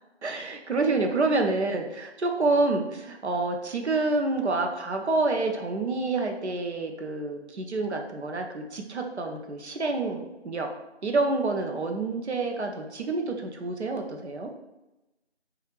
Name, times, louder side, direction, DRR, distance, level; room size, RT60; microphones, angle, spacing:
voice 1, 0.2-10.7 11.0-14.5, right 3 dB, 80° right, 3 dB, 0.6 m, -28 dB
3.1 x 2.4 x 3.1 m, 0.99 s
figure-of-eight pair, 175°, 34 cm